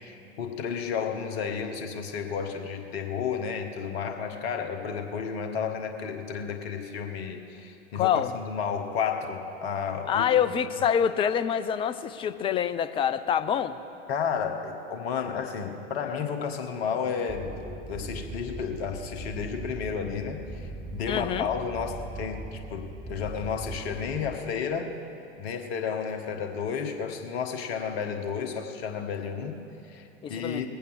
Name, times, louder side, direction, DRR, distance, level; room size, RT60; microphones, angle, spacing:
voice 1, 0.0-10.3 14.1-20.4 20.9-25.0 25.4-30.7, left 6 dB, 55° left, 5 dB, 1.5 m, -32 dB
voice 2, 7.9-8.3 10.1-13.8 21.1-21.5 30.2-30.6, left 8 dB, 15° left, 12 dB, 0.4 m, -26 dB
sound 1, 17.3-24.4, right 2 dB, 5° right, 0.9 m, -40 dB
20.0 x 8.7 x 6.5 m, 2.8 s
figure-of-eight pair, 85°, 36 cm